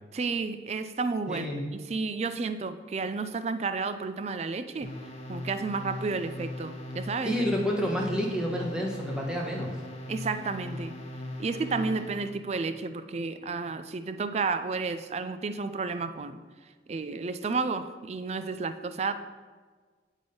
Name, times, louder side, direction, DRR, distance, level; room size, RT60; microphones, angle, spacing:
voice 1, 0.1-4.9 5.3-7.4 10.1-11.0 11.4-16.4 16.9-19.1, right 4 dB, 35° right, 11 dB, 0.4 m, -31 dB
voice 2, 1.3-1.6 7.2-9.7, equal, 5° right, -2 dB, 1.2 m, -29 dB
sound 1, 4.8-12.4, left 1 dB, 35° left, 1.1 m, -39 dB
7.4 x 5.2 x 5.3 m, 1.5 s
head